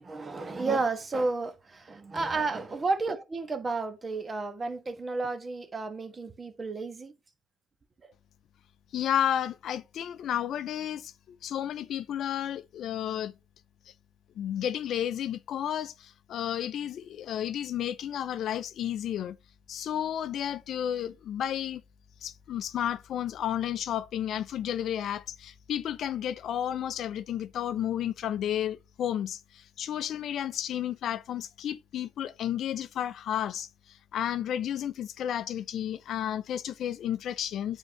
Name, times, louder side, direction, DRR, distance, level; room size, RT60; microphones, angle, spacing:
voice 1, 0.0-7.1 8.0-8.1, right 3 dB, 30° right, 1.2 m, -32 dB
voice 2, 8.9-11.1 11.4-13.3 14.4-19.4 19.7-21.8 22.2-29.4 29.8-33.7 34.1-37.8, left 10 dB, 65° left, 0.5 m, -32 dB
8.8 x 3.7 x 3.0 m
supercardioid pair, 75°, 0 cm